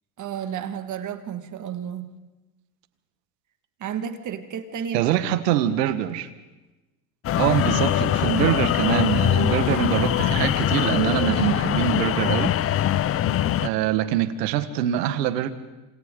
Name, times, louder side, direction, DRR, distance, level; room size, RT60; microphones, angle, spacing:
voice 1, 0.2-2.1 3.8-5.2, right 8 dB, 40° right, 8 dB, 1.9 m, -32 dB
voice 2, 4.9-6.3 7.4-12.6 13.6-15.5, right 12 dB, 85° right, 11 dB, 1.6 m, -24 dB
sound 1, 7.2-13.7, left 11 dB, 30° left, 0.6 m, -22 dB
27.5 x 27.0 x 3.9 m, 1.1 s
supercardioid pair, 110°, 47 cm